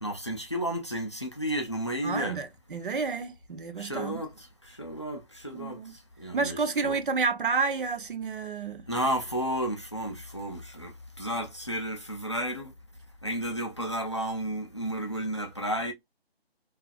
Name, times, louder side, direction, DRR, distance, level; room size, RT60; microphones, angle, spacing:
voice 1, 0.0-2.4 3.8-5.8 6.2-6.6 6.8-7.0 8.9-12.7 13.2-15.9, equal, 30° left, 0.4 m, -32 dB
voice 2, 2.0-4.2 5.5-5.9 6.3-8.8, right 4 dB, 55° right, 0.6 m, -30 dB
2.4 x 2.4 x 2.4 m
figure-of-eight pair, 160°, 31 cm